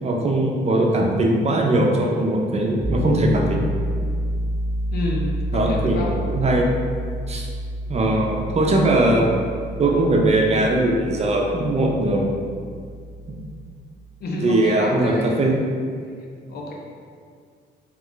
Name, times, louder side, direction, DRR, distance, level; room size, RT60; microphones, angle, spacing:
voice 1, 0.0-3.6 5.5-6.7 7.3-7.5 7.9-9.3 9.8-12.3 13.3-13.4 14.4-15.6, right 1 dB, 35° right, 0 dB, 0.6 m, -20 dB
Piano, 2.8-13.6, equal, 15° left, 1.0 m, -29 dB
voice 2, 4.9-6.1 14.2-15.3 16.5-16.7, left 1 dB, 55° left, -1 dB, 0.6 m, -28 dB
3.0 x 2.3 x 3.8 m, 2.1 s
cardioid pair, 90°, 20 cm